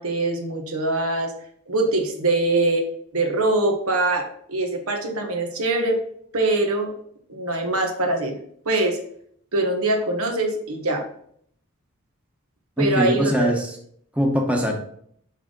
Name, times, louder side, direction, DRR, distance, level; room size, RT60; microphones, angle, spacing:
voice 1, 0.0-1.3 1.7-2.9 3.1-6.0 6.3-6.9 7.3-8.4 8.6-9.0 9.5-11.1 12.8-13.5, right 2 dB, 85° right, 3 dB, 1.4 m, -23 dB
voice 2, 12.8-13.7 14.2-14.7, equal, 5° right, 1 dB, 0.9 m, -21 dB
5.9 x 5.6 x 3.8 m, 0.64 s
head